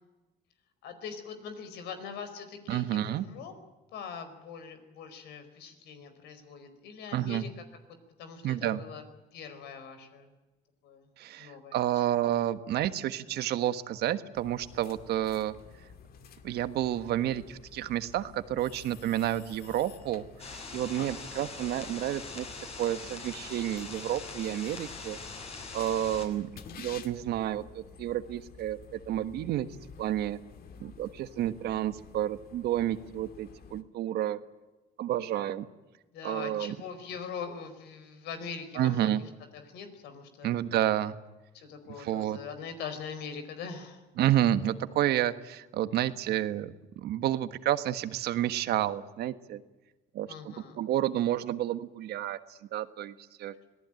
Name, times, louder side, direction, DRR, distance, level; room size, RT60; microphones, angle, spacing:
voice 1, 0.8-3.5 3.9-7.5 8.2-9.0 9.3-10.3 10.8-11.1 11.4-12.0 20.9-21.1 36.1-39.1 39.5-40.6 41.5-44.0 50.3-50.8, left 6 dB, 85° left, 9 dB, 4.7 m, -42 dB
voice 2, 2.7-3.2 7.1-7.4 8.4-8.8 11.2-15.5 16.4-22.5 22.8-25.2 25.7-26.5 26.8-29.7 30.0-30.4 30.8-34.4 35.0-35.6 36.2-36.7 38.7-39.2 40.4-41.2 42.0-42.4 44.2-49.6 50.1-53.5, right 12 dB, 75° right, 11 dB, 1.5 m, -30 dB
sound 1, 14.3-33.8, left 6 dB, 60° left, 2.3 m, -51 dB
sound 2, 20.4-26.3, left 3 dB, 40° left, 6.5 m, -42 dB
26.0 x 18.5 x 9.1 m, 1.1 s
cardioid pair, 110°, 17 cm